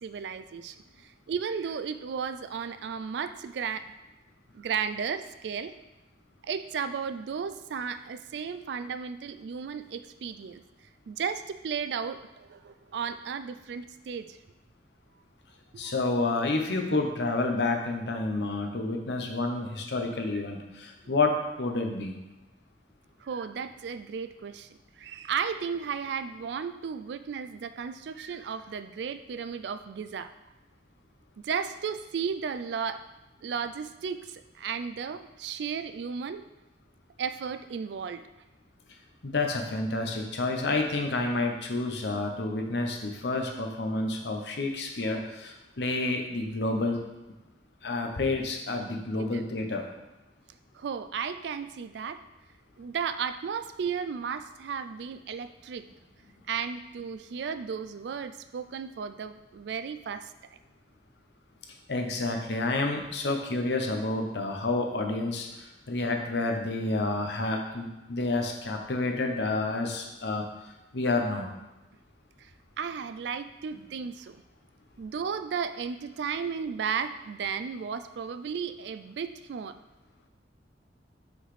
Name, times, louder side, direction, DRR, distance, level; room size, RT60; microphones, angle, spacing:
voice 1, 0.0-3.9 4.5-5.7 6.4-10.6 11.1-14.4 15.7-15.9 23.2-24.7 25.0-30.3 31.4-33.1 33.4-36.4 37.2-38.2 49.2-49.4 50.7-52.2 52.8-55.8 56.5-60.6 72.4-72.5 72.8-74.4 75.0-79.8, right 6 dB, 65° right, 11 dB, 0.3 m, -34 dB
voice 2, 15.8-22.1 39.2-47.0 47.8-49.9 61.9-70.5 70.9-71.5, left 2 dB, 65° left, 3 dB, 0.8 m, -29 dB
5.9 x 5.2 x 3.3 m, 1.0 s
head